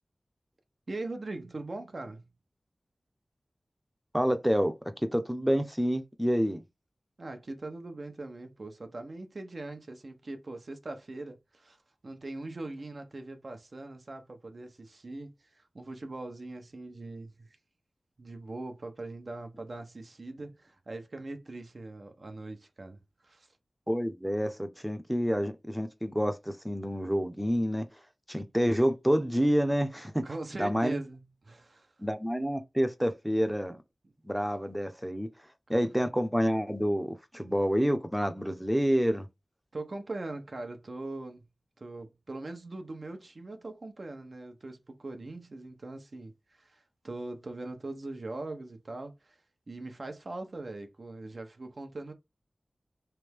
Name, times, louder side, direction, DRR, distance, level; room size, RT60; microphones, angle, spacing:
voice 1, 0.9-2.3 7.2-11.8 12.0-17.6 18.2-23.5 30.2-31.9 39.7-41.5 41.8-49.4 49.7-52.1, right 2 dB, 60° right, 0.8 m, -41 dB
voice 2, 4.1-6.6 23.9-27.9 28.3-30.2 30.6-31.0 32.0-33.8 34.2-35.3 35.7-39.3, equal, ahead, 0.7 m, -28 dB
3.4 x 3.4 x 3.4 m
wide cardioid pair, 60°, 0 cm